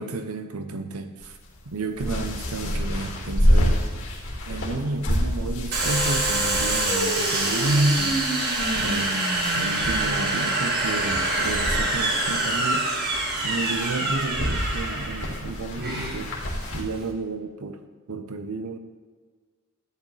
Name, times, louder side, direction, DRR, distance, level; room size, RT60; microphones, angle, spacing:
voice 1, 0.0-1.4 1.7-3.8 4.5-8.2 8.7-12.9 13.4-16.3 16.7-17.8 18.1-18.8, right 2 dB, 85° right, 8 dB, 0.8 m, -30 dB
sound 1, 1.2-16.8, equal, 65° left, 2.3 m, -29 dB
Domestic sounds home sounds, 5.7-17.1, right 2 dB, 45° right, 1.9 m, -26 dB
14.0 x 9.9 x 3.4 m, 1.5 s
head